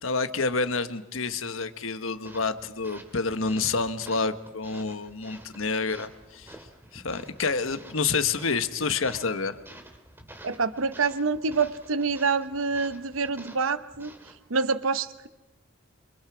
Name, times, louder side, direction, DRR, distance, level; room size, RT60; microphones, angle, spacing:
voice 1, 0.0-6.5 6.9-9.6, left 4 dB, 90° left, 10 dB, 1.4 m, -28 dB
sound 1, 2.2-14.4, right 1 dB, 10° right, 3.0 m, -50 dB
voice 2, 10.4-14.1 14.5-15.3, right 4 dB, 85° right, 12 dB, 0.9 m, -27 dB
29.0 x 25.5 x 5.0 m, 0.98 s
head